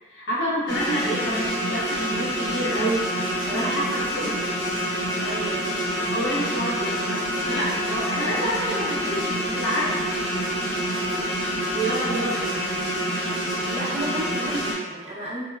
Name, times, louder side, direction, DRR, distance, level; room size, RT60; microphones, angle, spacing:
voice 1, 0.1-3.1 3.5-4.3 6.1-7.2 7.5-10.9 11.5-12.6, right 1 dB, 80° left, -5 dB, 0.8 m, -28 dB
sound 1, 0.7-14.7, equal, 55° left, 1.1 m, -27 dB
voice 2, 3.4-3.8 4.2-4.4 5.2-6.8 7.1-7.4 13.2-15.4, right 1 dB, 35° right, -5 dB, 0.5 m, -35 dB
3.7 x 2.0 x 2.3 m, 1.2 s
head